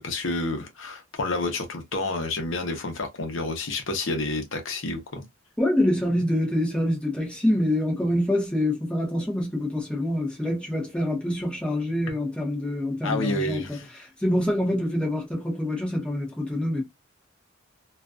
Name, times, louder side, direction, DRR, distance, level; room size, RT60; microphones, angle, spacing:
voice 1, 0.0-5.2 13.0-13.9, left 2 dB, 70° left, 0.7 m, -29 dB
voice 2, 5.6-16.8, left 1 dB, 5° left, 0.8 m, -26 dB
2.4 x 2.2 x 2.4 m
head